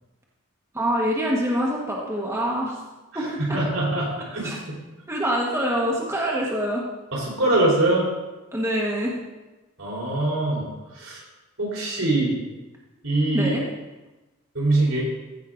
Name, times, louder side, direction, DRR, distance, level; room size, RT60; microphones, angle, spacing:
voice 1, 0.7-2.8 3.1-3.6 4.4-4.6 5.1-6.8 8.5-9.2 13.3-13.6, equal, 15° right, -3 dB, 1.1 m, -25 dB
voice 2, 3.1-4.8 7.1-8.1 9.8-11.2 11.6-12.3 13.0-13.5 14.5-15.0, right 2 dB, 80° right, -4 dB, 3.7 m, -23 dB
14.5 x 5.5 x 3.8 m, 1.1 s
head